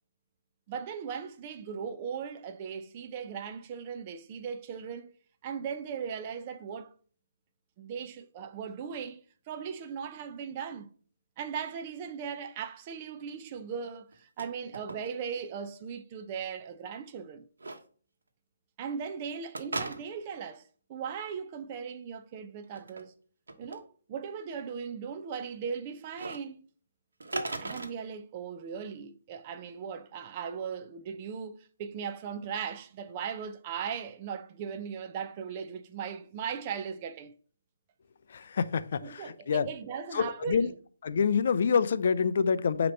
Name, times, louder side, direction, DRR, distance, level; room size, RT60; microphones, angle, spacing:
voice 1, 0.7-5.2 5.4-6.9 7.8-9.2 9.5-10.9 11.4-17.5 18.8-23.1 23.6-26.6 27.6-37.3 39.0-40.7, right 7 dB, 25° right, 0.5 m, -38 dB
sound 1, 14.1-14.5 14.7-15.4 15.6-15.7 17.6-17.8 19.5-20.3 22.6-23.0 23.5-23.8 26.1-26.4 27.2-27.9, right 2 dB, 90° right, 1.1 m, -36 dB
voice 2, 38.3-39.7 40.1-40.7 41.0-42.9, left 6 dB, 50° left, 0.4 m, -27 dB
6.4 x 3.0 x 5.3 m
hypercardioid pair, 165°, 0 cm